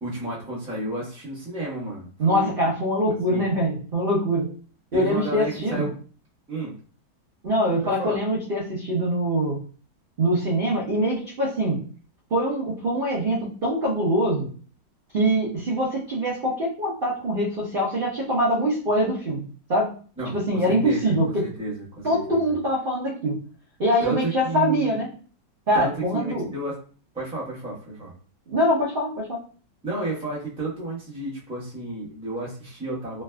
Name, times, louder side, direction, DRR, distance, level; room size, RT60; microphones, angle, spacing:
voice 1, 0.0-2.6 3.1-3.5 4.9-5.9 6.5-6.7 7.8-8.2 20.2-21.1 21.4-22.4 24.0-24.9 25.7-26.7 27.1-28.1 29.8-33.2, right 2 dB, 5° right, -6 dB, 0.7 m, -31 dB
voice 2, 2.2-4.5 4.9-5.9 7.4-9.6 10.2-11.8 12.3-14.5 15.1-19.4 19.7-19.9 20.3-21.4 22.0-23.4 23.8-25.1 25.7-26.5 28.5-29.4, equal, 50° right, -6 dB, 0.6 m, -23 dB
3.2 x 2.6 x 2.2 m, 0.41 s
omnidirectional pair, 1.9 m